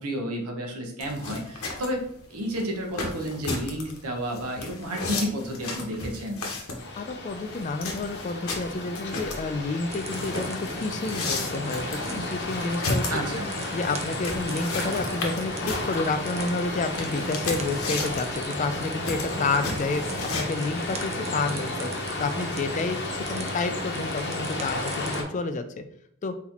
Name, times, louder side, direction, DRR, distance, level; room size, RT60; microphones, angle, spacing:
voice 1, 0.0-2.0 2.3-6.4 13.1-13.5, equal, 85° right, 2 dB, 1.0 m, -31 dB
sound 1, 1.0-20.4, left 3 dB, 75° left, 1.0 m, -34 dB
sound 2, 6.8-25.2, left 2 dB, 50° left, 0.9 m, -33 dB
voice 2, 7.0-13.0 13.7-21.9 22.2-25.8 26.2-26.3, left 3 dB, 35° left, 9 dB, 0.4 m, -30 dB
sound 3, 9.9-25.2, right 3 dB, 30° right, 0.5 m, -39 dB
4.1 x 4.0 x 2.9 m, 0.72 s
head